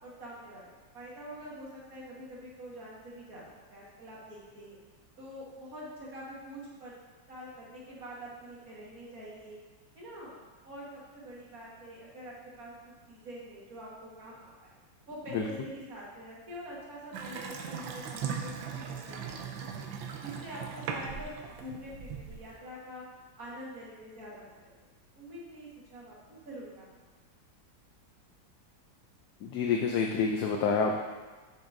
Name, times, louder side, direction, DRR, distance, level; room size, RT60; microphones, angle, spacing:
voice 1, 0.0-3.4 3.7-4.8 5.2-6.9 7.3-9.6 10.0-10.3 10.6-14.7 15.1-19.8 20.2-21.3 21.6-23.0 23.4-24.7 25.1-26.9, equal, 50° right, -6 dB, 1.9 m, -45 dB
Water tap faucet / Sink (filling or washing) / Bathtub (filling or washing), 17.1-22.6, right 6 dB, 85° right, 1.4 m, -39 dB
voice 2, 29.4-31.0, left 5 dB, 70° left, 1 dB, 1.0 m, -28 dB
9.2 x 5.4 x 2.6 m, 1.3 s
omnidirectional pair, 2.0 m